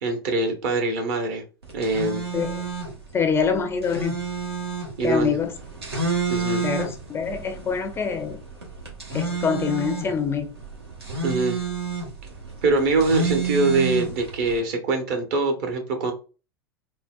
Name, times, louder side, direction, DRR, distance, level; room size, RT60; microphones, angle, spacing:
voice 1, 0.0-1.4 1.7-2.2 5.0-5.4 6.3-6.6 11.2-11.6 12.6-16.1, right 3 dB, 50° right, 4 dB, 0.9 m, -23 dB
sound 1, 1.6-14.6, right 4 dB, 80° right, 1.0 m, -30 dB
voice 2, 3.1-4.2 5.0-5.5 6.6-8.4 9.1-10.5, left 6 dB, 20° left, 6 dB, 0.4 m, -25 dB
3.7 x 2.1 x 2.3 m, 0.34 s
figure-of-eight pair, 85°, 13 cm